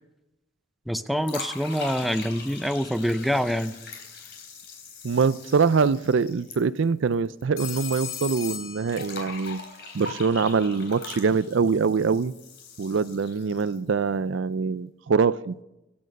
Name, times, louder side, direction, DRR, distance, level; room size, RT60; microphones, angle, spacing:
voice 1, 0.9-3.7, equal, ahead, 0.5 m, -26 dB
sound 1, 1.2-7.4 7.7-7.8 8.9-13.9, left 4 dB, 55° left, 3.9 m, -41 dB
voice 2, 5.0-9.6 9.9-12.3 12.8-15.5, right 5 dB, 60° right, 0.4 m, -24 dB
Telephone, 7.6-9.6, left 9 dB, 75° left, 1.7 m, -37 dB
25.5 x 8.8 x 5.3 m
head